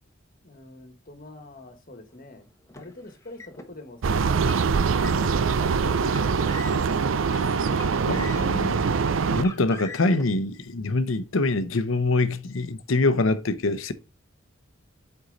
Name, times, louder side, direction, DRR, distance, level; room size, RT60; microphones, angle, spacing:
voice 1, 0.4-2.5 2.7-6.6, left 2 dB, 45° left, 1.4 m, -45 dB
Car, 2.7-3.7 4.3-5.4 6.0-7.0 7.6-8.7 9.3-10.2, left 3 dB, 15° left, 1.0 m, -42 dB
sound 1, 4.0-9.4, right 5 dB, 80° right, 0.5 m, -23 dB
voice 2, 8.0-8.8 9.3-13.9, left 2 dB, 90° left, 0.8 m, -25 dB
8.2 x 4.5 x 3.9 m
head